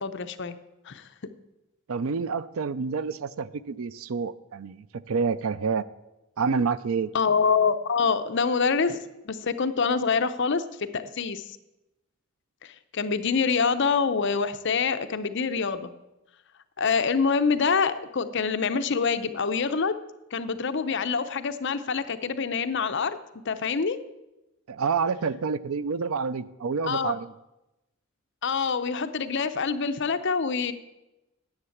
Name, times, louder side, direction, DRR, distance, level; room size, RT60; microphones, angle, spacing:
voice 1, 0.0-0.6 0.9-1.1 7.1-9.0 9.2-10.6 10.9-11.5 12.6-15.9 16.8-19.9 20.3-23.2 23.5-24.0 26.9-27.1 28.4-30.7, left 5 dB, 60° left, 10 dB, 0.7 m, -25 dB
voice 2, 1.9-5.8 6.4-7.1 24.7-27.3, right 5 dB, 80° right, 17 dB, 0.5 m, -28 dB
9.8 x 7.9 x 7.2 m, 0.97 s
head